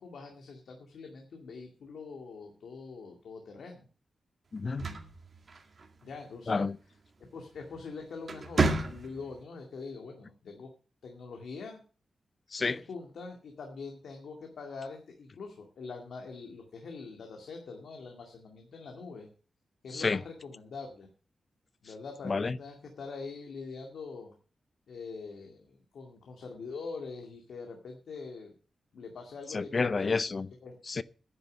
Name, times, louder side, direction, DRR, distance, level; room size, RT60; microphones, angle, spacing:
voice 1, 0.0-3.9 6.0-7.0 7.3-10.7 11.0-11.8 12.6-19.3 19.8-21.1 21.8-24.3 24.9-28.5 28.9-30.2 30.6-30.8, left 4 dB, 90° left, 2.2 m, -44 dB
voice 2, 4.5-4.9 6.5-6.8 12.5-12.8 19.9-20.2 22.2-22.6 29.5-30.5 30.9-31.0, left 4 dB, 40° left, 0.6 m, -30 dB
sound 1, 4.6-6.1 7.5-7.8 8.2-9.4, right 3 dB, 45° right, 2.0 m, -31 dB
10.5 x 6.8 x 9.3 m
wide cardioid pair, 135°, 0 cm